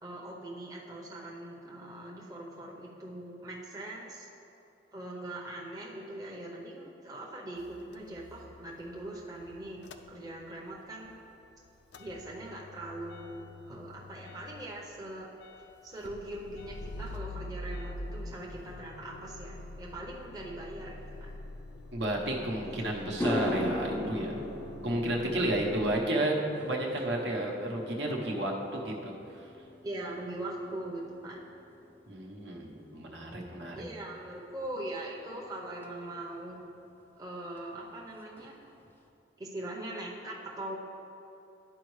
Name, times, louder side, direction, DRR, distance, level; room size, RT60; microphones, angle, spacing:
voice 1, 0.0-4.3 4.9-9.8 10.1-11.1 12.0-15.3 15.8-21.4 22.6-24.0 25.2-25.7 29.8-31.5 33.7-36.6 37.2-38.5 39.4-40.8, right 1 dB, 20° right, -3 dB, 0.7 m, -41 dB
Motor vehicle (road) / Engine starting / Idling, 7.6-10.7 11.1-26.0, left 1 dB, 70° left, 0.4 m, -46 dB
voice 2, 21.9-24.4 24.8-26.3 26.6-29.1 32.1-33.8, right 1 dB, 70° right, -1 dB, 1.0 m, -32 dB
sound 1, 22.5-22.6 23.0-31.5 31.8-32.2 35.8-35.9 37.6-37.7 38.0-38.1 38.4-38.9, left 1 dB, 10° left, 0.4 m, -38 dB
11.5 x 4.7 x 3.2 m, 2.8 s
head